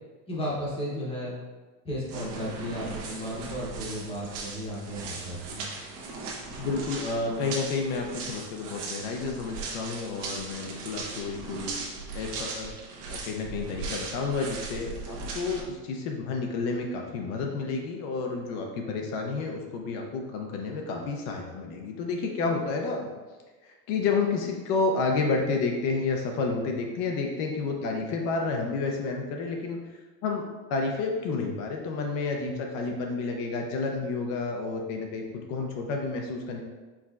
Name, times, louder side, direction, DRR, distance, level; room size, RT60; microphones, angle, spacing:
voice 1, 0.3-1.4 1.8-5.7 32.4-32.7, equal, 15° left, -5 dB, 0.8 m, -34 dB
sound 1, 2.1-15.6, right 3 dB, 85° right, 1.1 m, -38 dB
voice 2, 6.6-11.7 12.1-12.7 13.1-23.1 23.6-29.8 30.2-30.4 30.7-36.6, left 4 dB, 50° left, 2 dB, 0.5 m, -30 dB
4.7 x 4.1 x 2.4 m, 1.3 s
cardioid pair, 180°, 36 cm